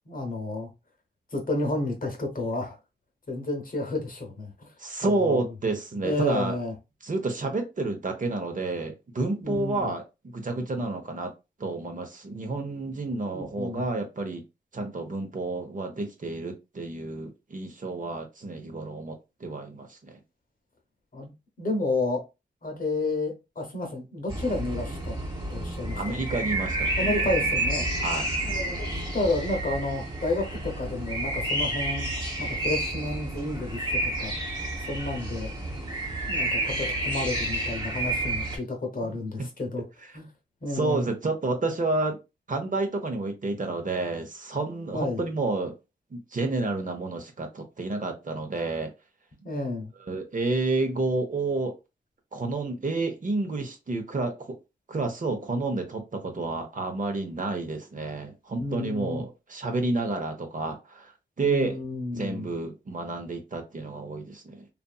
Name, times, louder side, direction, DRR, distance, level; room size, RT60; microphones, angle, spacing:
voice 1, 0.1-0.7 1.3-2.8 3.3-4.7 5.0-5.5 6.0-6.7 9.4-9.9 13.3-13.8 21.1-21.3 21.6-22.2 22.6-25.1 25.5-26.0 27.0-27.9 28.5-32.1 32.4-34.3 34.9-35.5 36.3-39.8 40.1-40.2 40.6-41.1 44.9-45.2 49.4-49.9 58.6-59.2 61.4-62.5, left 2 dB, 50° left, 0.9 m, -31 dB
voice 2, 4.8-6.6 7.0-10.0 10.3-11.3 11.6-14.4 14.7-20.2 25.9-26.9 28.0-28.3 39.0-39.1 39.4-39.5 40.7-42.2 42.5-45.7 46.1-48.9 50.1-51.7 52.3-54.6 54.9-61.8 62.2-64.7, right 3 dB, 45° right, 0.8 m, -30 dB
sound 1, 24.3-38.6, right 1 dB, 25° right, 1.1 m, -30 dB
2.6 x 2.5 x 2.3 m
cardioid pair, 60°, 19 cm